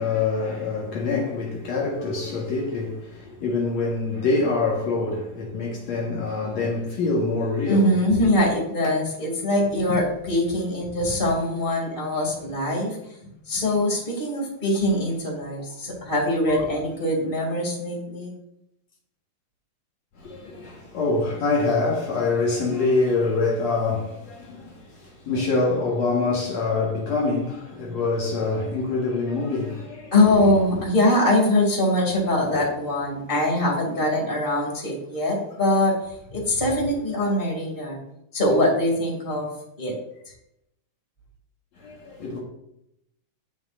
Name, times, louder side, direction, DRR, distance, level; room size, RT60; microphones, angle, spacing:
voice 1, 0.0-8.2 20.2-30.1 30.4-30.5 41.8-42.4, left 3 dB, 60° left, 2.7 m, -25 dB
voice 2, 7.7-13.0 13.5-18.4 30.1-38.0 38.3-39.5 39.8-39.9 40.3-40.4, left 1 dB, 15° left, 2.8 m, -23 dB
17.5 x 6.2 x 2.7 m
omnidirectional pair, 3.6 m